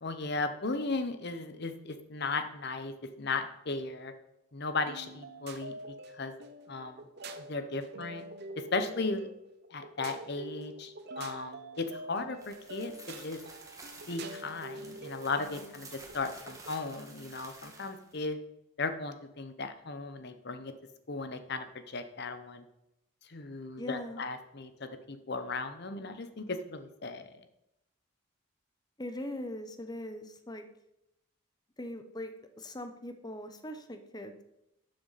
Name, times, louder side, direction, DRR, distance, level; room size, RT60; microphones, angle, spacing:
voice 1, 0.0-4.1 4.5-6.3 6.7-7.0 7.4-8.2 8.6-9.3 9.7-13.4 14.1-18.4 18.8-20.7 21.1-22.6 23.3-27.3, left 3 dB, 50° left, 9 dB, 0.8 m, -36 dB
sound 1, 4.9-17.0, right 2 dB, 50° right, 0.8 m, -46 dB
sound 2, 12.4-18.2, right 3 dB, 15° right, 1.3 m, -51 dB
voice 2, 23.8-24.2 29.0-30.7 31.8-34.4, left 1 dB, 20° left, 7 dB, 0.8 m, -41 dB
12.5 x 6.8 x 4.1 m, 0.85 s
head